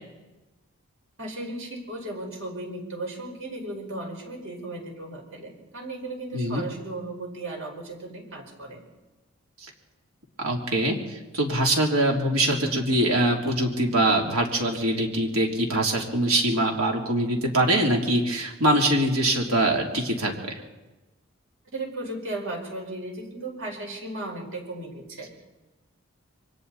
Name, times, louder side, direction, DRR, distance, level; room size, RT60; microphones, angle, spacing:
voice 1, 1.2-8.8 21.7-25.4, right 2 dB, 70° right, 1 dB, 5.2 m, -36 dB
voice 2, 6.3-6.6 9.6-9.7 10.4-20.5, right 1 dB, 85° right, 1 dB, 3.5 m, -23 dB
28.0 x 24.0 x 4.3 m, 1.1 s
head